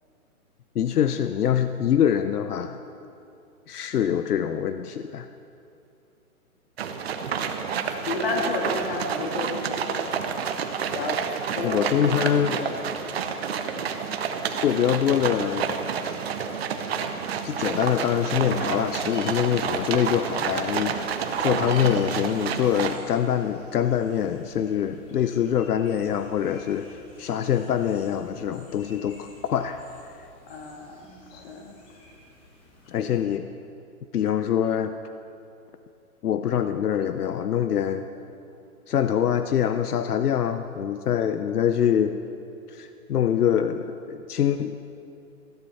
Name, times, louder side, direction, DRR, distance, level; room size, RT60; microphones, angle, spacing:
voice 1, 0.7-2.8 3.7-5.3 11.6-12.6 14.6-15.7 17.4-21.0 21.4-29.8 32.9-33.5 34.1-34.9 36.2-38.1 38.9-42.2 42.7-44.8, left 9 dB, 85° left, 9 dB, 0.7 m, -24 dB
sound 1, 6.8-23.0, right 6 dB, 45° right, 0.9 m, -29 dB
voice 2, 8.0-10.2 10.9-11.2 11.5-12.8 30.5-31.7, left 3 dB, 40° left, 1 dB, 2.1 m, -32 dB
sound 2, 18.3-33.3, left 2 dB, 10° left, 1.2 m, -51 dB
14.5 x 13.5 x 4.2 m, 2.6 s
hypercardioid pair, 155°, 45 cm